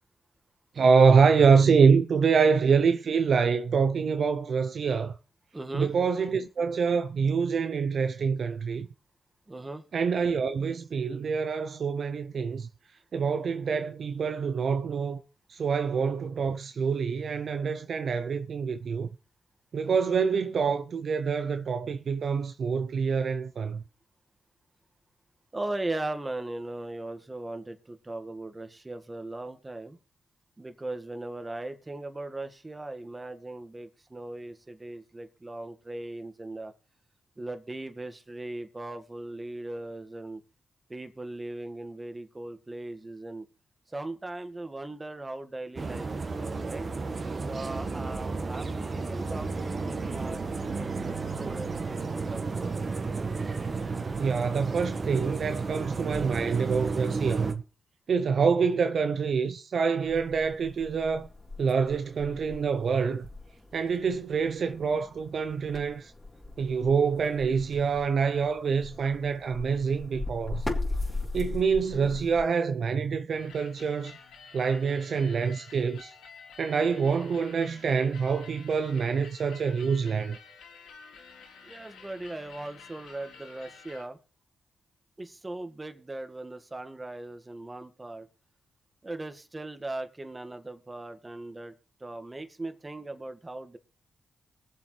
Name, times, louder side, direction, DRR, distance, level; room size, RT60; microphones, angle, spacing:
voice 1, 0.8-5.1 5.7-8.9 9.9-12.7 13.1-15.2 15.5-19.1 19.7-23.8 54.2-57.5 58.1-61.3 61.6-63.3 63.7-66.1 66.6-70.6 71.3-74.2 74.5-76.1 76.6-80.4, right 5 dB, 65° right, 0.6 m, -26 dB
voice 2, 5.5-5.9 9.5-9.8 25.5-30.0 30.6-36.7 37.4-40.4 40.9-43.5 43.9-46.9 47.5-50.4 50.7-52.6 81.6-84.2 85.2-88.3 89.0-91.7 92.0-93.8, right 2 dB, 25° right, 1.8 m, -38 dB
sound 1, 45.8-57.5, right 4 dB, 50° right, 1.5 m, -32 dB
sound 2, 60.0-72.5, left 2 dB, 20° left, 3.8 m, -39 dB
sound 3, 73.3-84.0, left 5 dB, 85° left, 1.6 m, -50 dB
21.0 x 7.4 x 3.3 m
supercardioid pair, 50°, 0 cm